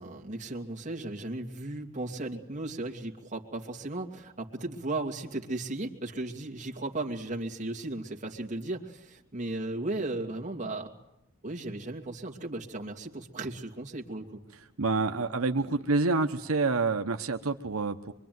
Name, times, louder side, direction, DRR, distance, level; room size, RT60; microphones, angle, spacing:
voice 1, 0.0-10.9 11.4-14.4, right 2 dB, 35° right, 2 dB, 2.6 m, -36 dB
voice 2, 14.8-18.1, right 3 dB, 85° right, 6 dB, 1.1 m, -27 dB
25.0 x 24.0 x 9.5 m, 0.82 s
head